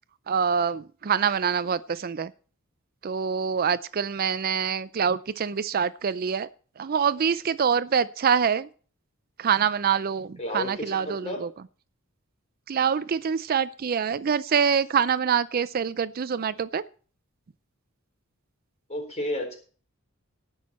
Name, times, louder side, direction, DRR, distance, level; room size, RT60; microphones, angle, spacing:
voice 1, 0.3-2.3 3.0-6.5 6.8-8.7 9.4-11.5 12.7-16.8, right 7 dB, 45° right, 16 dB, 0.4 m, -25 dB
voice 2, 10.4-11.4 18.9-19.6, equal, 30° left, 3 dB, 4.0 m, -32 dB
18.5 x 6.4 x 4.2 m, 0.40 s
head